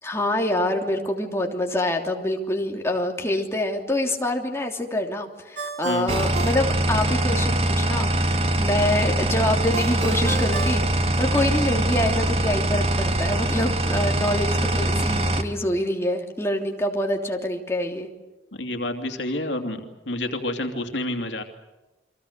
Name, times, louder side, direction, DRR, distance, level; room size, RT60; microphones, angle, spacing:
voice 1, 0.0-18.1, left 1 dB, 15° left, 2 dB, 3.1 m, -26 dB
Ringtone, 5.6-7.5 9.7-11.7, right 4 dB, 80° right, 4.3 m, -34 dB
sound 1, 6.1-15.4, right 1 dB, 35° right, 1.9 m, -23 dB
voice 2, 18.5-21.4, left 1 dB, 85° left, 5 dB, 2.8 m, -29 dB
30.0 x 24.0 x 6.8 m, 1.1 s
head